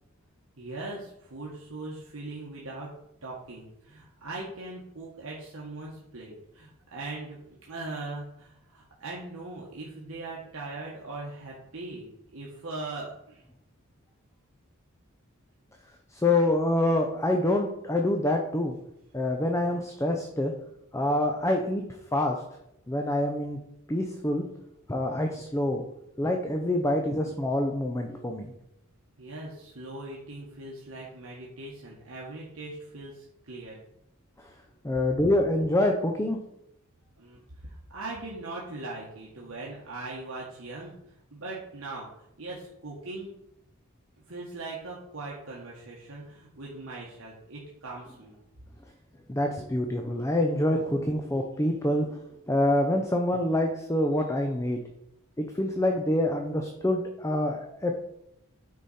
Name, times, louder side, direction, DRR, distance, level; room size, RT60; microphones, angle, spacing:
voice 1, 0.6-3.0 3.2-13.4 29.2-33.8 37.2-41.0 41.3-42.1 42.4-43.3 44.3-48.3, right 2 dB, 70° right, -4 dB, 1.4 m, -40 dB
voice 2, 16.1-18.7 19.1-20.5 20.9-21.8 22.1-22.4 22.9-23.6 23.9-24.4 24.9-25.8 26.2-28.5 34.4-34.5 34.8-36.4 49.3-52.2 52.5-54.8 55.4-58.0, left 1 dB, 15° left, 3 dB, 0.6 m, -26 dB
9.1 x 4.9 x 4.2 m, 0.81 s
head